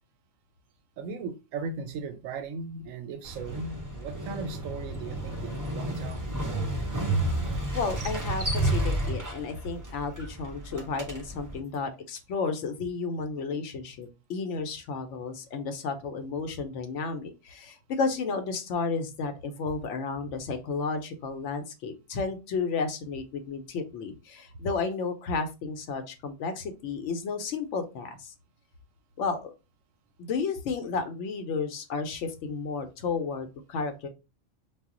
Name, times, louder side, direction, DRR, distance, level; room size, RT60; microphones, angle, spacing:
voice 1, 1.0-6.3, right 4 dB, 90° right, 1.0 m, -37 dB
Motorcycle, 3.2-11.6, right 1 dB, 30° right, 0.3 m, -31 dB
voice 2, 7.7-28.3 29.2-29.5 30.2-34.1, left 4 dB, 70° left, 0.9 m, -32 dB
2.3 x 2.0 x 3.6 m
omnidirectional pair, 1.3 m